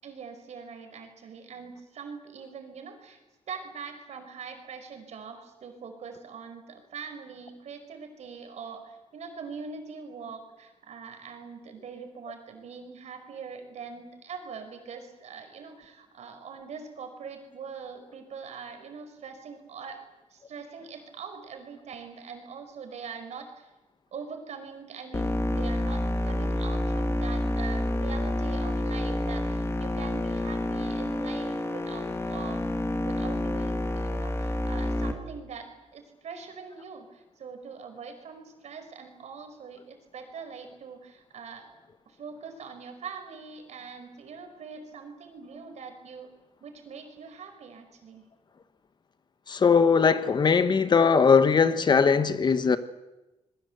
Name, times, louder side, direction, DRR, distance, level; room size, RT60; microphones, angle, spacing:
voice 1, 0.0-3.2 3.5-20.0 20.3-23.7 24.1-32.6 33.0-41.7 42.1-46.3 46.6-48.3, right 5 dB, 70° right, 5.1 m, -43 dB
sound 1, 25.1-35.1, left 1 dB, 20° left, 2.7 m, -28 dB
voice 2, 49.5-52.8, left 5 dB, 40° left, 1.3 m, -20 dB
27.5 x 22.0 x 8.0 m
wide cardioid pair, 150°, 12 cm